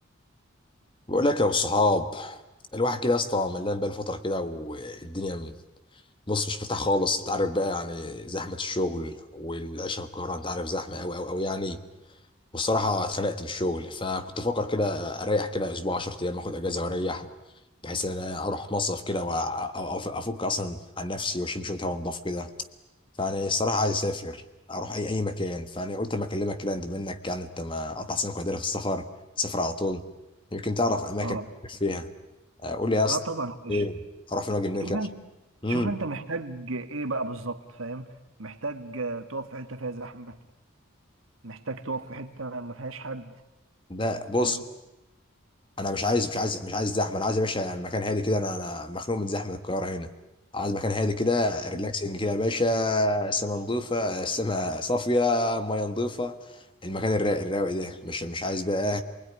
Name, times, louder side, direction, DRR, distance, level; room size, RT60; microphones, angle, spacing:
voice 1, 1.1-2.4 2.7-5.5 6.3-11.8 12.5-17.3 17.8-22.5 23.2-24.4 24.7-29.1 29.4-30.0 30.5-31.4 31.8-32.1 32.6-33.2 33.7-34.0 34.3-35.0 35.6-35.9 43.9-44.6 45.8-50.1 50.5-59.0, left 2 dB, 25° left, 1.3 m, -28 dB
voice 2, 33.1-33.8 34.8-35.2 35.7-38.1 38.4-40.4 41.4-43.4 44.4-44.6 51.7-51.9, right 3 dB, 80° right, 1.9 m, -34 dB
28.5 x 20.5 x 9.9 m
head